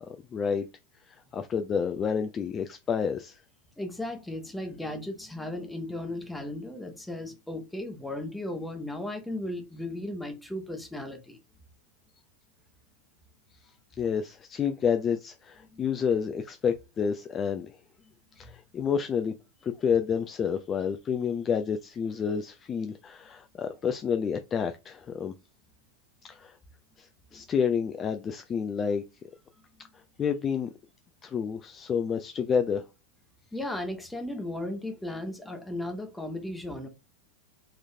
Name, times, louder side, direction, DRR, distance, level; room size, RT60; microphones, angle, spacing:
voice 1, 0.0-0.7 1.0-3.4 13.6-13.7 14.0-17.8 18.4-19.3 19.6-25.3 26.2-26.6 27.0-29.0 30.2-30.7 31.2-32.9, left 7 dB, 25° left, 0.3 m, -29 dB
voice 2, 3.8-11.4 15.7-15.8 27.3-27.4 33.5-36.9, left 1 dB, 5° left, 0.9 m, -36 dB
3.8 x 3.0 x 2.7 m
figure-of-eight pair, 90°, 0 cm